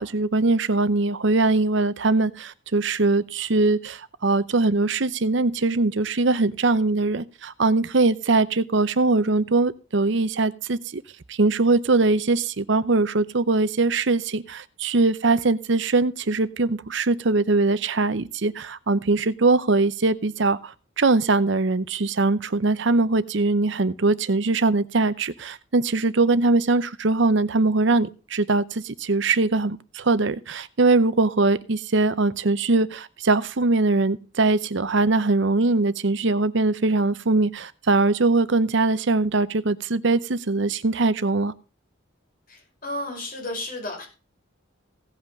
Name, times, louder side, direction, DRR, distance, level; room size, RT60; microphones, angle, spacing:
voice 1, 0.0-11.0 11.3-41.5, right 3 dB, 60° right, 0.7 m, -22 dB
voice 2, 42.5-44.1, left 1 dB, 40° left, 5.6 m, -33 dB
16.5 x 5.8 x 6.5 m
head